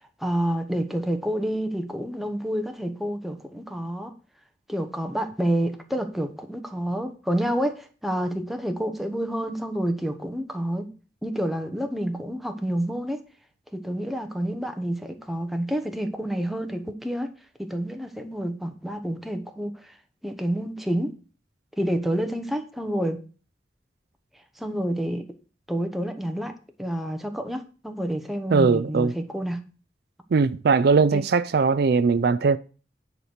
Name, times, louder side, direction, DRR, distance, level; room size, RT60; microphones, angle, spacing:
voice 1, 0.2-4.1 4.7-10.9 11.2-13.2 13.7-17.3 17.6-19.9 20.2-21.1 21.8-23.2 24.6-25.3 25.7-26.5 26.8-29.7 31.1-31.2, right 1 dB, ahead, 1.0 m, -28 dB
voice 2, 28.5-29.1 30.3-32.6, right 4 dB, 60° right, 0.4 m, -20 dB
10.0 x 4.6 x 6.5 m
head